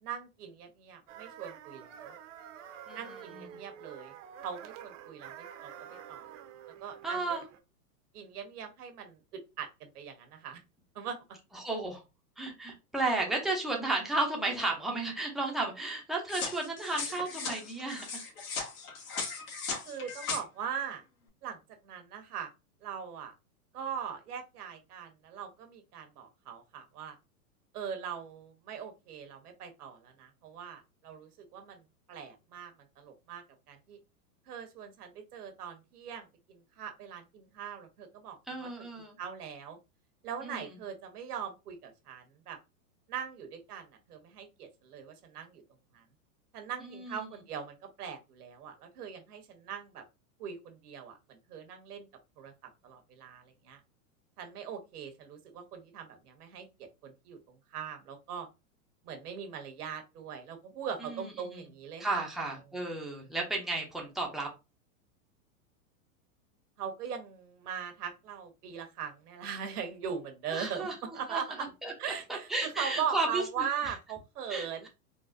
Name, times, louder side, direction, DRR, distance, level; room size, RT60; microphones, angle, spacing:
voice 1, 0.0-2.1 2.9-4.1 4.4-6.3 6.8-7.3 8.1-10.6 10.9-11.2 19.8-21.0 21.4-22.5 22.8-23.3 23.7-27.2 27.7-31.8 32.1-34.0 34.5-38.8 39.2-39.8 40.2-42.6 43.1-45.6 45.9-46.0 46.5-50.0 50.4-52.1 52.4-53.8 54.4-58.5 59.0-62.3 66.8-74.9, right 7 dB, 80° right, 6 dB, 1.1 m, -41 dB
sound 1, 1.1-7.6, right 9 dB, 55° right, 0.7 m, -48 dB
voice 2, 2.9-3.6 7.0-7.4 11.5-12.0 12.4-18.2 38.5-39.2 40.4-40.7 46.8-47.2 61.0-61.5 62.0-64.5 70.5-70.9 71.3-71.4 71.8-71.9 72.5-73.4 74.5-74.9, right 2 dB, ahead, -1 dB, 0.5 m, -33 dB
sound 2, 16.3-20.4, left 5 dB, 65° left, 1.5 m, -37 dB
3.8 x 2.1 x 2.5 m, 0.27 s
hypercardioid pair, 120°, 45 cm